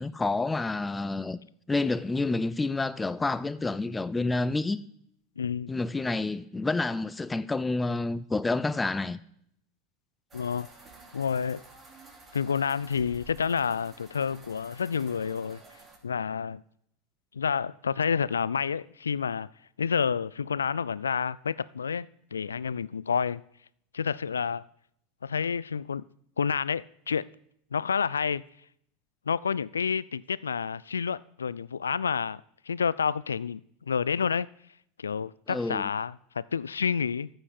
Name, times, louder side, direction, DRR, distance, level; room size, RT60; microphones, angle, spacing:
voice 1, 0.0-1.4 1.7-4.8 5.7-9.2 35.5-35.9, left 3 dB, 15° left, 0.6 m, -29 dB
voice 2, 5.4-5.7 10.3-10.7 11.1-11.6 12.3-15.6 16.0-16.6 17.3-19.5 19.8-23.4 23.9-24.6 25.2-26.0 26.4-27.2 27.7-28.4 29.3-32.4 32.7-33.6 33.9-34.5 35.0-37.3, left 6 dB, 85° left, 0.3 m, -29 dB
sound 1, 10.3-16.0, right 3 dB, 25° right, 3.1 m, -52 dB
14.0 x 7.8 x 4.3 m
hypercardioid pair, 85°, 0 cm